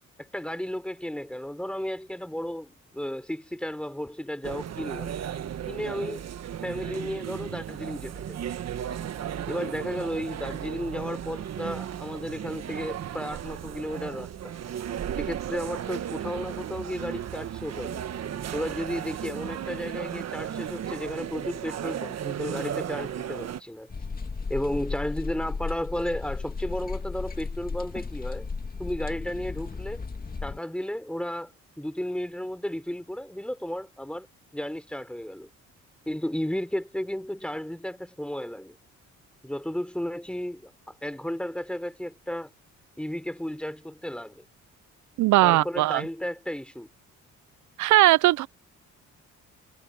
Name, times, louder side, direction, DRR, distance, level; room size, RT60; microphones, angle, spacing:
voice 1, 0.2-5.1 5.7-6.3 6.6-8.4 9.5-14.5 15.1-18.0 18.5-23.9 24.5-28.5 28.8-30.0 30.4-31.5 31.8-34.3 34.5-35.5 36.1-38.8 39.4-42.5 43.0-44.4 45.4-46.9, equal, 5° left, 3.7 m, -33 dB
sound 1, 4.4-23.6, right 9 dB, 60° right, 1.5 m, -35 dB
sound 2, 23.9-30.6, left 4 dB, 30° left, 2.4 m, -34 dB
voice 2, 45.2-46.0 47.8-48.5, right 17 dB, 75° right, 0.5 m, -19 dB
cardioid pair, 90°, 30 cm